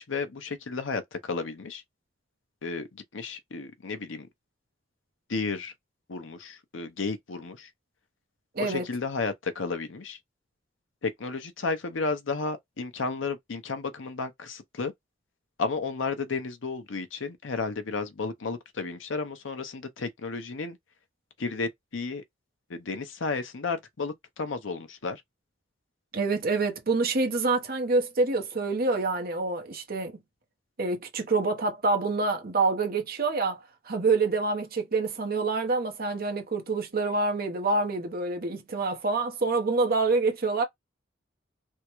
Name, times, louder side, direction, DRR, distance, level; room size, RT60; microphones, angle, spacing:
voice 1, 0.0-1.8 2.6-4.3 5.3-5.7 6.1-7.7 8.6-10.2 11.0-14.9 15.6-20.8 21.4-22.2 22.7-25.2, left 4 dB, 90° left, 0.7 m, -33 dB
voice 2, 8.5-8.9 26.1-30.2 30.8-33.6 33.8-40.6, right 3 dB, 50° right, 1.0 m, -26 dB
3.5 x 2.2 x 3.0 m
head